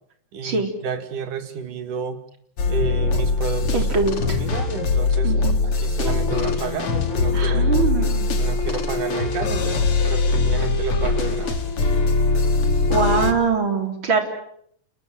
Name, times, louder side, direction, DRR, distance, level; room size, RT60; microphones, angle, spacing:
voice 1, 0.3-2.2 2.7-5.3 5.6-7.7 8.4-11.6, right 6 dB, 90° right, 9 dB, 3.9 m, -31 dB
sound 1, 2.6-13.3, left 3 dB, 45° left, 3.2 m, -21 dB
voice 2, 3.7-4.4 5.2-5.6 7.3-8.3 12.9-14.2, right 4 dB, 40° right, 5 dB, 4.5 m, -23 dB
30.0 x 20.5 x 9.3 m, 0.70 s
omnidirectional pair, 3.5 m